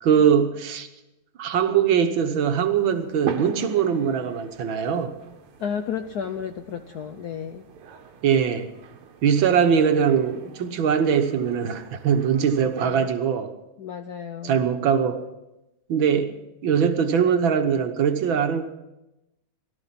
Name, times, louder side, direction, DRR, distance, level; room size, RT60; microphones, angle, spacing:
voice 1, 0.0-0.9 1.4-5.2 8.2-8.7 9.2-13.5 14.4-15.2 15.9-18.6, right 7 dB, 65° right, 7 dB, 1.8 m, -21 dB
sound 1, 2.8-13.0, right 8 dB, 85° right, 2.1 m, -40 dB
voice 2, 5.6-7.7 12.6-13.1 13.8-14.7, left 7 dB, 70° left, 8 dB, 0.9 m, -33 dB
17.5 x 13.0 x 5.8 m, 0.94 s
omnidirectional pair, 2.4 m